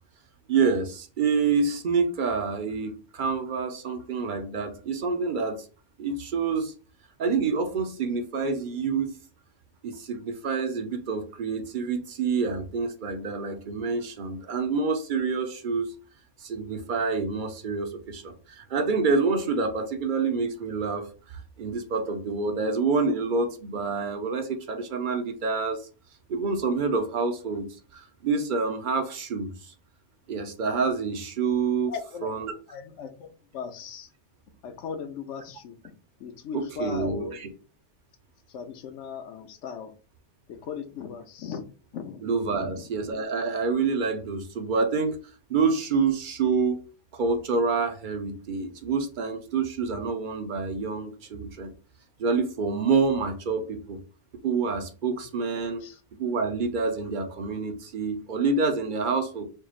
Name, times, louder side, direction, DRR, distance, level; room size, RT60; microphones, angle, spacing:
voice 1, 0.5-5.7 6.0-6.7 7.2-9.2 9.8-15.9 16.4-21.1 21.6-25.8 26.3-27.7 27.9-29.5 30.3-31.9 32.2-32.5 36.5-37.5 42.2-45.2 45.5-46.8 47.1-51.7 52.2-54.0 54.4-55.8 56.2-59.4, right 4 dB, 50° right, 0.6 m, -27 dB
voice 2, 31.9-32.3 32.7-34.1 34.6-37.4 38.5-39.9 40.5-41.6 41.9-42.9 55.0-55.3 55.8-56.0, left 6 dB, 75° left, 1.0 m, -38 dB
4.5 x 3.0 x 2.4 m
omnidirectional pair, 1.2 m